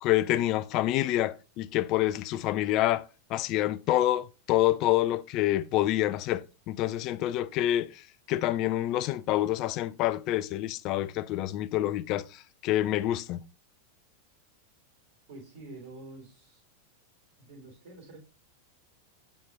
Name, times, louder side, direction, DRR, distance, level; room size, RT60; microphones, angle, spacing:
voice 1, 0.0-3.0 3.3-8.0 8.3-12.3 12.6-13.4, left 14 dB, 40° left, 0.3 m, -27 dB
voice 2, 15.3-16.6 17.4-18.2, right 2 dB, 50° right, 3.2 m, -47 dB
5.9 x 5.1 x 3.5 m
figure-of-eight pair, 90°, 0 cm